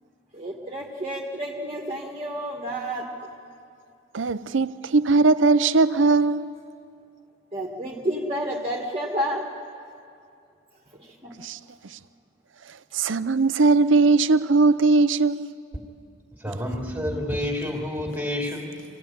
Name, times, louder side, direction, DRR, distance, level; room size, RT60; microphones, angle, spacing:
voice 1, 0.3-3.1 7.5-9.4 10.9-11.3, equal, 30° right, 1.5 m, -30 dB
voice 2, 4.1-6.4 11.4-11.6 12.9-15.5, right 3 dB, 75° right, 0.6 m, -19 dB
voice 3, 16.4-18.8, left 1 dB, 10° right, 2.4 m, -29 dB
25.5 x 16.5 x 9.1 m
head